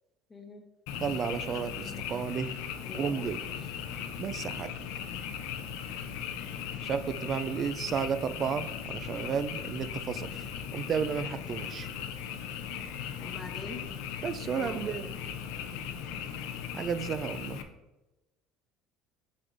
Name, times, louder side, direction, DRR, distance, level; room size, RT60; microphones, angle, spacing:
voice 1, 0.3-0.6 2.8-3.3 7.5-7.7 9.1-9.4 13.2-13.9 14.6-14.9, left 3 dB, 20° left, 2 dB, 0.9 m, -45 dB
Frog, 0.9-17.6, left 8 dB, 85° left, 0.5 m, -38 dB
voice 2, 1.0-2.5 2.9-3.4 4.2-4.7 6.8-10.3 10.7-11.9 14.2-15.1 16.7-17.6, right 7 dB, 40° right, 14 dB, 0.3 m, -32 dB
6.2 x 6.0 x 2.6 m, 1.1 s
cardioid pair, 120°, 0 cm